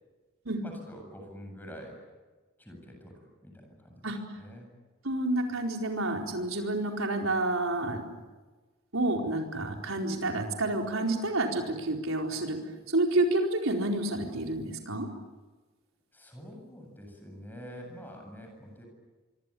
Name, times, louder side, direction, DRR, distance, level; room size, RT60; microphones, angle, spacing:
voice 1, 0.6-2.0 2.6-3.1 3.4-4.7 16.1-18.9, equal, 10° left, 3 dB, 8.0 m, -46 dB
voice 2, 5.0-8.0 8.9-12.6 12.9-15.1, right 2 dB, 80° right, 2 dB, 4.4 m, -29 dB
26.0 x 25.0 x 8.6 m, 1.3 s
head